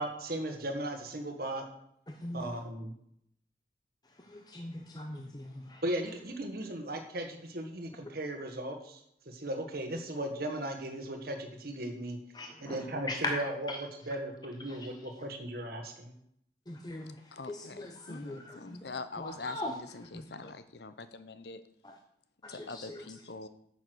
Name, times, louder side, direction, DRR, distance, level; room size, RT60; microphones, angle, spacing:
voice 1, 0.0-1.6 2.3-2.9 5.8-9.0 9.3-12.2 12.6-16.1, right 1 dB, 50° right, 5 dB, 1.5 m, -37 dB
voice 2, 2.1-2.4 4.3-5.8 12.3-12.8 13.0-13.4 13.7-13.8 14.7-14.8 16.7-17.2 17.5-18.8 19.2-19.7 20.1-20.2 22.6-23.0, left 2 dB, 20° left, 3 dB, 0.8 m, -39 dB
voice 3, 17.3-21.6 22.5-23.5, left 3 dB, 60° left, 12 dB, 0.8 m, -44 dB
9.2 x 7.0 x 6.3 m, 0.73 s
head